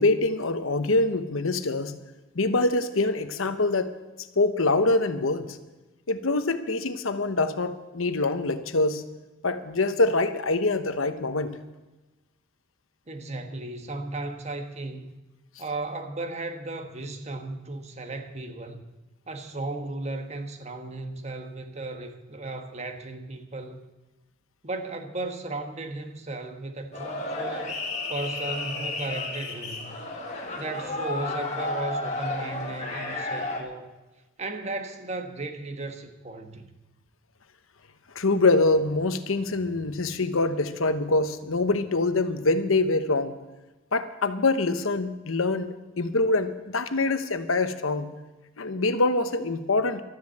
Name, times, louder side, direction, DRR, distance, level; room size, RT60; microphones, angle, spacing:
voice 1, 0.0-2.0 2.3-3.9 4.4-5.6 6.1-9.0 9.4-11.6 38.1-43.4 43.9-48.1 48.6-50.0, left 2 dB, 80° left, 10 dB, 1.0 m, -24 dB
voice 2, 13.1-15.1 15.6-18.8 19.3-23.8 24.6-27.7 28.1-30.0 30.6-33.9 34.4-36.7, right 2 dB, 30° right, 6 dB, 1.2 m, -35 dB
sound 1, 26.9-33.6, left 2 dB, 35° left, 2.0 m, -32 dB
12.5 x 11.0 x 7.8 m, 1.1 s
head